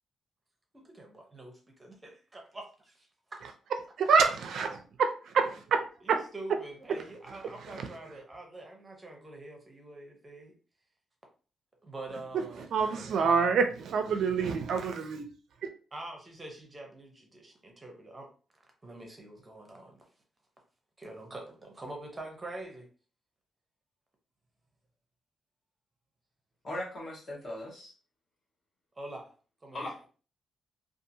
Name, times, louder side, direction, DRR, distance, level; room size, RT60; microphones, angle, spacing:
voice 1, 0.7-3.4 6.1-10.5 11.8-12.6 13.2-13.5 15.9-18.3 18.8-20.1 21.0-22.9 29.0-29.3 29.6-29.9, right 2 dB, 20° right, 1 dB, 0.7 m, -45 dB
voice 2, 3.4-6.6 6.9-8.2 12.3-15.3 15.6-15.7, right 5 dB, 65° right, 6 dB, 0.4 m, -28 dB
voice 3, 26.6-27.9 29.7-30.2, left 1 dB, 35° left, -2 dB, 0.9 m, -39 dB
2.7 x 2.4 x 2.6 m, 0.37 s
wide cardioid pair, 165°, 0 cm